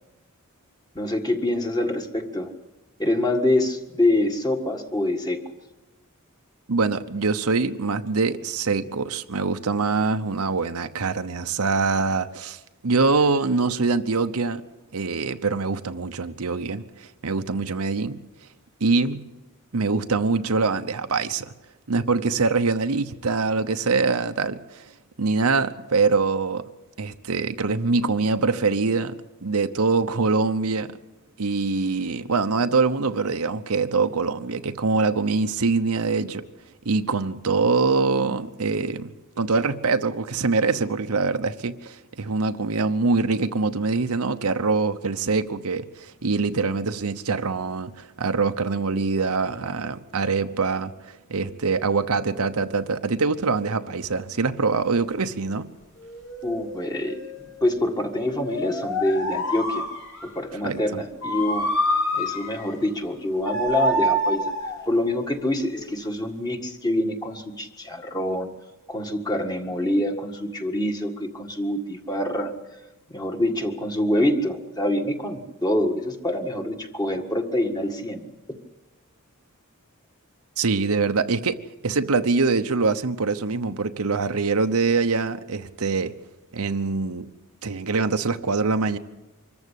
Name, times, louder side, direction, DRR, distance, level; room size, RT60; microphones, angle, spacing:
voice 1, 1.0-2.5 3.0-5.4 56.4-59.9 60.2-61.7 62.1-64.5 64.9-68.5 68.9-72.5 73.1-78.2, left 1 dB, 20° left, 1.8 m, -25 dB
voice 2, 6.7-14.6 14.9-18.2 18.8-19.3 19.7-21.5 21.9-24.8 25.2-26.7 27.0-30.9 31.4-36.4 36.8-39.1 39.4-55.7 60.6-60.8 80.6-86.1 86.5-87.3 87.6-89.0, right 4 dB, 80° right, 0.9 m, -24 dB
sound 1, 54.7-54.8 56.1-57.6 58.3-60.3 61.2-62.7 63.5-64.9 65.8-66.1, equal, 70° left, 6.2 m, -27 dB
25.0 x 14.5 x 8.3 m
head